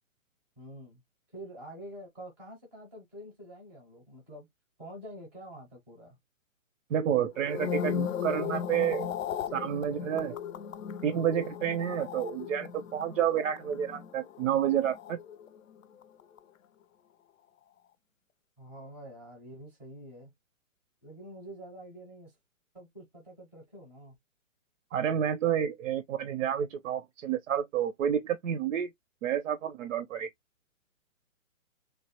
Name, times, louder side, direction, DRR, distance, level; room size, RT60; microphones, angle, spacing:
voice 1, 0.6-1.0 1.3-4.5 4.8-6.2 18.6-20.3 21.0-22.4 22.7-24.1, right 1 dB, 5° right, 0.4 m, -47 dB
voice 2, 6.9-9.1 9.5-10.4 11.0-15.2 24.9-28.9 29.2-30.3, right 9 dB, 70° right, 0.5 m, -29 dB
sound 1, 7.3-15.8 16.0-16.4, left 8 dB, 80° left, 0.5 m, -37 dB
3.2 x 2.1 x 2.7 m
hypercardioid pair, 140°, 40 cm